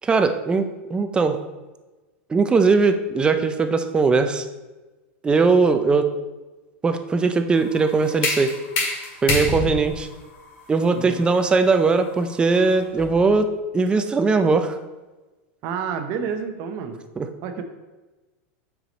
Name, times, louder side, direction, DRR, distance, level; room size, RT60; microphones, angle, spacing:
voice 1, 0.0-1.4 2.3-4.4 5.2-6.1 6.8-8.5 9.2-10.1 10.7-13.5 13.7-14.7 17.2-17.3, right 4 dB, 15° right, 8 dB, 0.5 m, -20 dB
sound 1, 7.5-13.3, left 2 dB, 55° left, 2.2 m, -29 dB
voice 2, 15.6-17.0 17.4-17.6, right 6 dB, 50° right, 7 dB, 0.8 m, -29 dB
6.3 x 4.8 x 4.0 m, 1.2 s
supercardioid pair, 135°, 7 cm